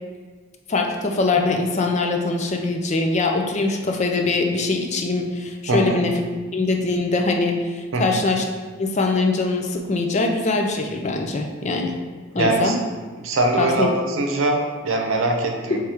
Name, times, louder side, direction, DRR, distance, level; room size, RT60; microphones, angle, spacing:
voice 1, 0.7-6.1 6.5-8.4 8.8-12.0 12.3-12.8 13.6-13.9, left 3 dB, 35° left, 3 dB, 0.4 m, -22 dB
voice 2, 5.7-6.0 7.9-8.2 12.3-12.8 13.2-15.8, right 2 dB, 85° right, 2 dB, 0.7 m, -22 dB
3.5 x 3.2 x 4.4 m, 1.5 s
head